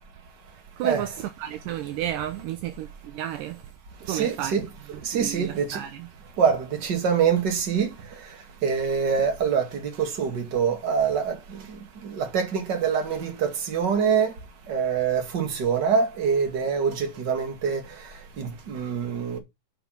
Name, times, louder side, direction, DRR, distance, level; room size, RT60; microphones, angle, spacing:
voice 1, 0.8-3.6 4.0-4.6 4.9-6.1, right 12 dB, 80° right, 2.2 m, -32 dB
voice 2, 4.1-4.6 5.1-5.8 6.4-6.6 6.8-7.9 8.6-9.6 10.0-11.3 12.2-14.3 14.7-17.8 18.4-19.4, right 6 dB, 35° right, 2.3 m, -24 dB
6.4 x 5.7 x 5.8 m
omnidirectional pair, 4.1 m